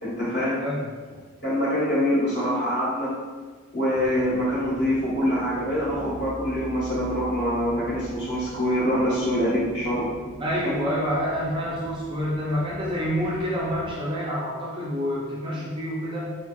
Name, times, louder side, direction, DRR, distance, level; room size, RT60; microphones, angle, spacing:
voice 1, 0.0-0.6 1.4-3.1 3.7-10.1 10.6-10.7, equal, 50° left, -8 dB, 1.1 m, -25 dB
voice 2, 0.6-1.2 10.4-16.4, equal, 25° right, -5 dB, 0.4 m, -28 dB
sound 1, 3.9-13.9, equal, 80° left, 0.9 m, -42 dB
3.1 x 2.7 x 2.2 m, 1.4 s
head